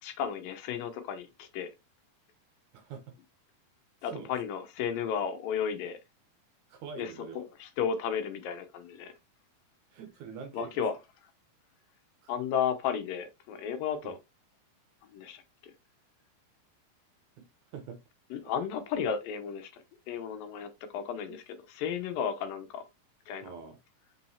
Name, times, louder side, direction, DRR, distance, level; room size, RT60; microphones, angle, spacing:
voice 1, 0.0-1.7 4.0-6.0 7.0-9.1 10.5-11.0 12.3-14.2 15.1-15.4 18.3-21.4 21.7-22.8 23.3-23.5, left 7 dB, 80° left, 2.6 m, -33 dB
voice 2, 2.7-3.1 4.0-4.3 6.7-7.5 9.9-10.8 12.2-12.3 14.0-14.1 17.4-17.5 17.7-18.0 21.3-21.4 23.4-23.8, right 6 dB, 70° right, 2.1 m, -44 dB
5.9 x 5.6 x 2.8 m
omnidirectional pair, 4.1 m